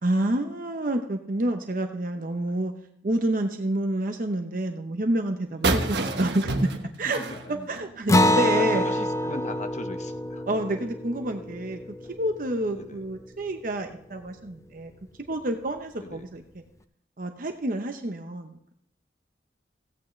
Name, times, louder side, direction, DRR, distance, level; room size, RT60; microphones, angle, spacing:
voice 1, 0.0-2.7 3.0-6.7 7.0-7.2 7.5-8.8 10.5-11.8 12.2-14.9 15.3-16.4 17.2-18.7, right 1 dB, 50° right, 5 dB, 0.8 m, -28 dB
sound 1, 5.6-8.4, right 2 dB, 70° right, 1.2 m, -28 dB
voice 2, 7.0-7.7 8.3-10.4 12.7-13.0 16.0-16.2, left 2 dB, 40° left, 7 dB, 1.0 m, -39 dB
Acoustic guitar, 8.1-13.0, left 1 dB, 15° left, 0.4 m, -26 dB
16.0 x 9.1 x 3.2 m, 0.72 s
head